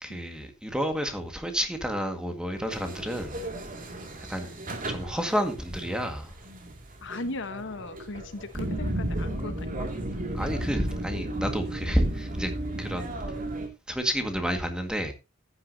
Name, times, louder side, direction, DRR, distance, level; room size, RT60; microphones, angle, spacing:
voice 1, 0.0-3.4 4.3-4.5 4.9-6.3 10.3-12.5 12.8-13.1 13.9-15.1, equal, 5° right, 1.8 m, -30 dB
sound 1, 2.6-13.7, right 1 dB, 40° right, 2.3 m, -34 dB
voice 2, 7.0-9.9, left 2 dB, 65° left, 1.2 m, -37 dB
14.0 x 9.6 x 2.8 m
head